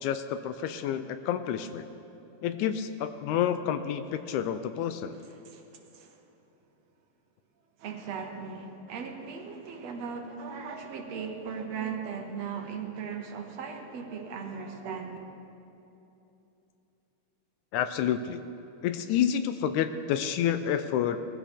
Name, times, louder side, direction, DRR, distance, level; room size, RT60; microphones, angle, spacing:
voice 1, 0.0-1.9 2.4-5.2 17.7-18.4 18.8-21.2, left 9 dB, 80° left, 10 dB, 1.9 m, -29 dB
voice 2, 5.3-6.2 7.8-15.2, right 6 dB, 65° right, 3 dB, 2.1 m, -38 dB
20.5 x 15.0 x 3.6 m, 2.9 s
omnidirectional pair, 3.6 m